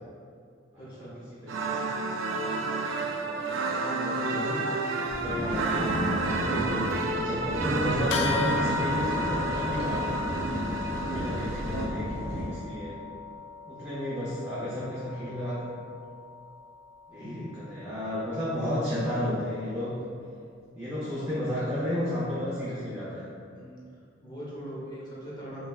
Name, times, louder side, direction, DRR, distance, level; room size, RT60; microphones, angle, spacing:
voice 1, 0.8-1.2 11.1-11.7 17.2-17.5 18.5-19.1 23.5-25.7, equal, 25° left, -6 dB, 0.8 m, -42 dB
voice 2, 1.4-5.9 6.3-10.1 11.1-13.0 13.7-15.6 17.1-17.3 17.7-20.0 20.7-23.2, left 1 dB, 15° right, -10 dB, 0.6 m, -33 dB
sound 1, 1.5-11.9, right 3 dB, 90° right, 0.3 m, -31 dB
sound 2, 5.1-12.5, equal, 55° right, 1.4 m, -33 dB
sound 3, 8.1-17.9, left 4 dB, 65° left, 0.3 m, -36 dB
5.5 x 2.2 x 2.3 m, 2.3 s
head